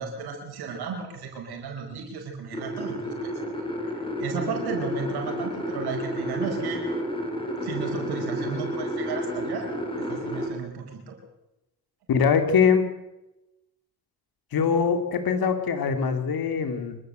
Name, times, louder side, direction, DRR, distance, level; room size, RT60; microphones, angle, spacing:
voice 1, 0.0-3.3 3.9-6.8 7.6-9.7 10.1-11.2, right 5 dB, 90° right, 3 dB, 5.0 m, -34 dB
sound 1, 2.5-10.5, equal, 15° left, 5.6 m, -31 dB
voice 2, 12.1-12.9 14.5-17.0, left 6 dB, 70° left, 7 dB, 3.3 m, -22 dB
25.0 x 14.5 x 7.9 m, 0.96 s
cardioid pair, 75°, 37 cm